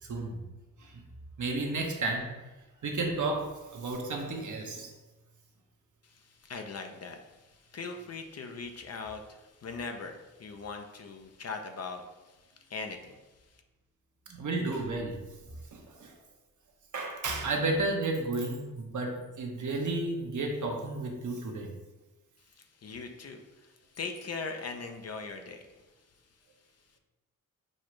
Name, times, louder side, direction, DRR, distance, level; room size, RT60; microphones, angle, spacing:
voice 1, 0.0-0.4 0.8-1.0 1.4-2.3 2.8-4.9 14.3-15.2 15.7-16.1 16.9-21.7, right 2 dB, 60° right, 2 dB, 0.9 m, -32 dB
voice 2, 6.0-13.6 22.4-26.3, left 4 dB, 45° left, 5 dB, 0.6 m, -41 dB
6.3 x 2.4 x 3.1 m, 1.1 s
cardioid pair, 55°, 34 cm